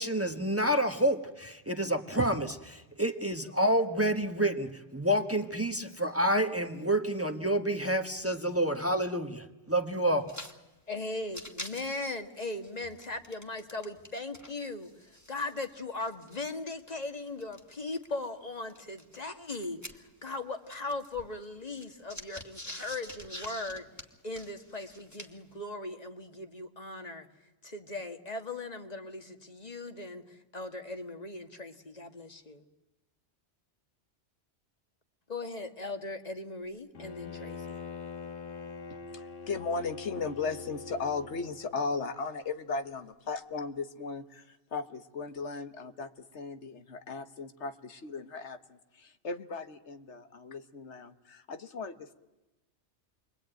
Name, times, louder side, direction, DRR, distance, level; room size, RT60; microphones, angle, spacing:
voice 1, 0.0-10.3, right 1 dB, 10° right, 6 dB, 1.4 m, -28 dB
sound 1, 10.2-10.6 10.8-10.9 11.2-14.1 14.3-18.1 18.7-20.4 20.7-25.5, left 1 dB, 15° left, 2.0 m, -47 dB
voice 2, 10.9-14.9 15.3-23.9 24.2-27.3 27.6-32.6 35.3-37.8, left 2 dB, 35° left, 6 dB, 1.9 m, -39 dB
Bowed string instrument, 36.9-41.8, left 4 dB, 55° left, 1.6 m, -43 dB
voice 3, 38.9-52.1, left 4 dB, 85° left, 9 dB, 1.6 m, -37 dB
29.0 x 22.5 x 9.1 m, 1.0 s
omnidirectional pair, 1.1 m